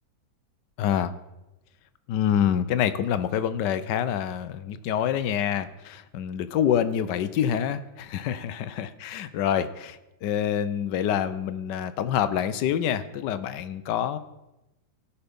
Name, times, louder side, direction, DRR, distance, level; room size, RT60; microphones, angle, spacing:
voice 1, 0.8-1.1 2.1-14.2, left 9 dB, 85° left, 13 dB, 1.3 m, -26 dB
16.0 x 5.7 x 5.2 m, 0.96 s
omnidirectional pair, 1.8 m